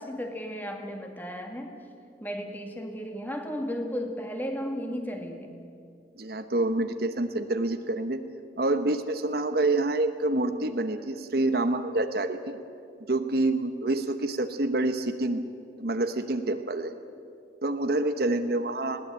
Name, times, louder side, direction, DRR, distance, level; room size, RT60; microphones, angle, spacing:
voice 1, 0.0-1.8 2.2-5.5, equal, 10° left, 3 dB, 1.9 m, -34 dB
voice 2, 6.2-8.2 8.6-12.6 13.1-15.5 15.8-16.9 17.6-19.0, right 2 dB, 55° right, 8 dB, 1.0 m, -27 dB
20.5 x 17.0 x 9.0 m, 2.4 s
head